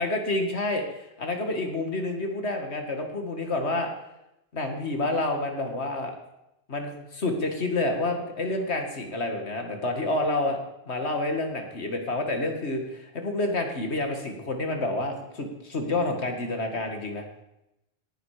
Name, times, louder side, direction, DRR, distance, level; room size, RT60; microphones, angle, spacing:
voice 1, 0.0-3.9 4.5-6.2 6.7-10.6 10.9-17.2, left 2 dB, 70° left, 4 dB, 2.3 m, -29 dB
18.5 x 10.5 x 5.0 m, 0.89 s
omnidirectional pair, 1.2 m